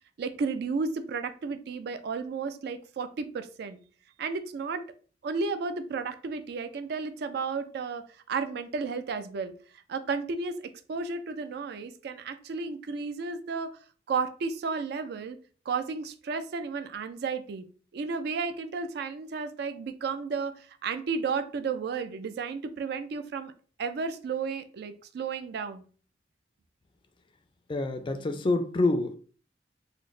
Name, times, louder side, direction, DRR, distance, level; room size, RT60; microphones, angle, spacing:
voice 1, 0.2-3.8 4.2-4.8 5.2-9.5 9.9-10.6 10.9-13.8 14.1-15.4 15.7-17.7 17.9-23.5 23.8-25.8, right 5 dB, 60° right, 0.3 m, -33 dB
voice 2, 27.7-29.1, left 2 dB, 25° left, 0.3 m, -27 dB
3.9 x 2.0 x 3.1 m
head